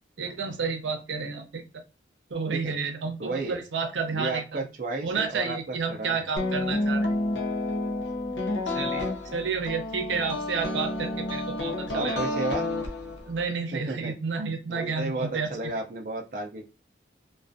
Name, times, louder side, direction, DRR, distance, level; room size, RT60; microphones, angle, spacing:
voice 1, 0.2-1.8 2.3-4.6 5.0-7.1 8.7-9.1 9.3-12.2 13.3-15.5, right 5 dB, 90° right, 5 dB, 0.6 m, -30 dB
voice 2, 3.2-3.6 4.1-6.3 10.1-10.2 11.9-12.6 13.7-14.1 14.7-16.7, right 2 dB, 45° right, 1 dB, 0.4 m, -33 dB
sound 1, 6.4-13.5, left 2 dB, 80° left, 0.6 m, -30 dB
2.4 x 2.3 x 2.5 m, 0.33 s
head